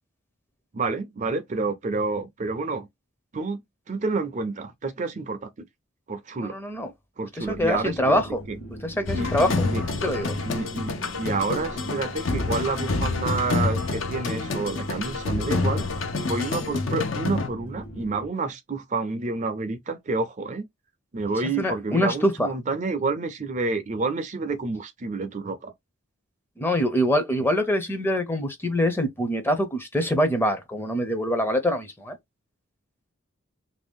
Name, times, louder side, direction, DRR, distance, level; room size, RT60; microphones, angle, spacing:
voice 1, 0.7-2.9 3.3-3.6 3.9-5.5 6.1-6.6 7.2-8.6 9.1-9.8 10.4-15.9 16.2-20.7 21.1-25.7, right 3 dB, 35° right, 0.5 m, -29 dB
voice 2, 6.4-6.9 7.4-8.4 8.8-9.6 10.0-10.3 21.6-22.5 26.6-32.2, equal, 10° left, 0.6 m, -24 dB
sound 1, 7.4-18.3, right 1 dB, 45° left, 1.2 m, -40 dB
sound 2, 9.1-17.5, left 3 dB, 65° left, 0.7 m, -28 dB
2.9 x 2.6 x 3.5 m
head